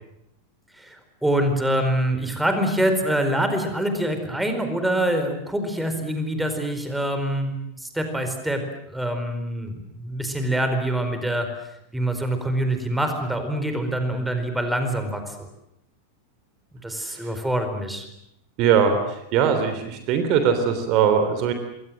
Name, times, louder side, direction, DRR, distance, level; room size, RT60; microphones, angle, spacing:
voice 1, 0.8-8.6 8.9-11.5 11.9-15.5 16.8-18.1, right 1 dB, 5° right, 6 dB, 4.6 m, -25 dB
voice 2, 18.6-21.5, right 7 dB, 40° right, 8 dB, 3.4 m, -20 dB
27.5 x 22.5 x 7.8 m, 0.81 s
figure-of-eight pair, 90°, 0 cm